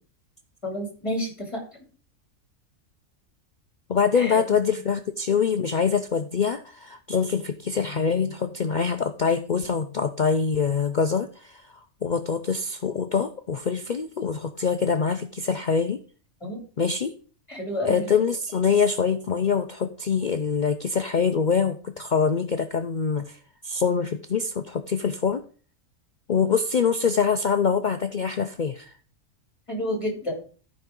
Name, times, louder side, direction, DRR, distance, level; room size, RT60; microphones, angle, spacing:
voice 1, 0.6-1.6 4.1-4.3 16.4-16.6 17.5-18.1 29.7-30.4, equal, 20° left, 1 dB, 2.9 m, -29 dB
voice 2, 3.9-11.7 12.0-16.0 16.8-17.1 17.8-23.4 23.6-25.4 26.3-28.9, left 6 dB, 55° left, 7 dB, 0.5 m, -24 dB
13.5 x 5.4 x 3.8 m, 0.40 s
omnidirectional pair, 1.4 m